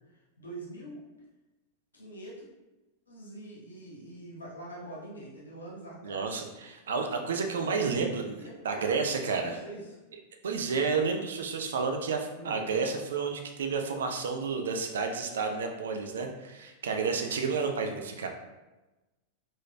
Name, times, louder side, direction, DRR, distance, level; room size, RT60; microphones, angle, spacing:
voice 1, 0.4-1.1 1.9-2.4 3.1-6.5 7.9-10.0 12.3-12.6, right 1 dB, 75° left, -5 dB, 1.1 m, -44 dB
voice 2, 6.0-8.3 8.6-9.6 10.4-18.3, right 5 dB, 65° right, 4 dB, 0.4 m, -31 dB
4.0 x 3.1 x 2.3 m, 1.1 s
figure-of-eight pair, 90°, 0 cm